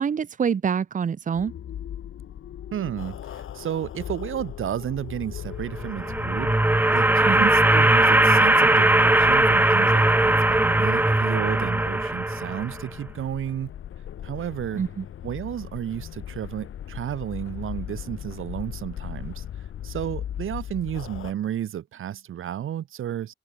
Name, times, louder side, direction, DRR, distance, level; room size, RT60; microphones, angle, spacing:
voice 1, 0.0-1.5 7.2-7.5 14.8-15.0, right 7 dB, 40° right, 1.3 m, -26 dB
sound 1, 1.3-21.3, left 10 dB, 85° left, 4.5 m, -39 dB
voice 2, 2.7-6.5 6.9-13.7 14.2-14.8 15.2-19.5 19.8-23.3, right 10 dB, 80° right, 1.9 m, -32 dB
sound 2, 5.7-12.9, right 2 dB, 10° right, 1.6 m, -19 dB
wide cardioid pair, 175°, 21 cm